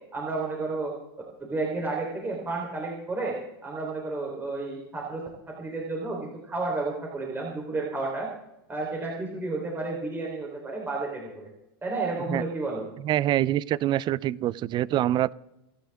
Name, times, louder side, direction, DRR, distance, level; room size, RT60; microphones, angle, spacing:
voice 1, 0.1-0.9 1.4-5.2 5.5-8.3 8.7-11.5 11.8-12.8, right 3 dB, 15° right, -1 dB, 3.7 m, -31 dB
voice 2, 13.0-15.3, right 13 dB, 35° right, 22 dB, 0.5 m, -25 dB
29.5 x 10.0 x 3.6 m, 0.90 s
hypercardioid pair, 115°, 13 cm